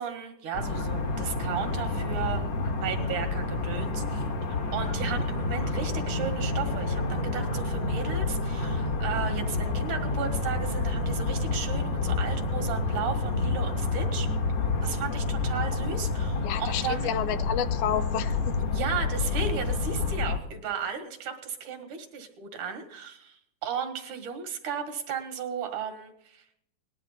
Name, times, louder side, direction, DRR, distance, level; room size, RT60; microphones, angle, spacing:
voice 1, 0.0-2.4 2.8-4.3 4.7-14.3 14.8-17.1 18.7-26.4, right 7 dB, 75° right, 6 dB, 3.0 m, -35 dB
sound 1, 0.5-20.4, left 3 dB, 60° left, 2.4 m, -29 dB
voice 2, 16.4-18.6, left 9 dB, 80° left, 12 dB, 2.2 m, -30 dB
19.0 x 11.0 x 4.1 m, 0.76 s
omnidirectional pair, 3.6 m